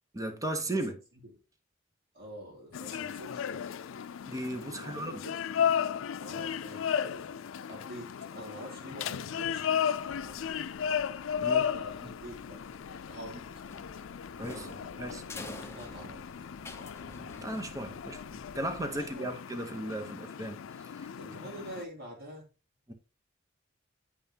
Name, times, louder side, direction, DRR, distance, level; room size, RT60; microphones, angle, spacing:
voice 1, 0.1-1.0 4.3-5.2 11.4-11.7 12.0-12.1 14.4-14.7 15.0-15.2 17.4-21.1 22.9-23.0, right 1 dB, 15° right, 0.8 m, -36 dB
voice 2, 2.1-3.7 4.7-5.4 6.2-7.3 7.7-10.4 11.7-12.6 12.9-13.6 14.5-16.3 18.9-19.4 21.2-22.4, equal, 50° right, 2.9 m, -47 dB
Street Market, 2.7-21.8, left 8 dB, 90° left, 0.4 m, -35 dB
sound 1, 9.9-19.1, left 2 dB, 60° left, 1.1 m, -56 dB
sound 2, 13.7-18.1, left 2 dB, 15° left, 0.7 m, -47 dB
8.6 x 5.4 x 2.8 m
head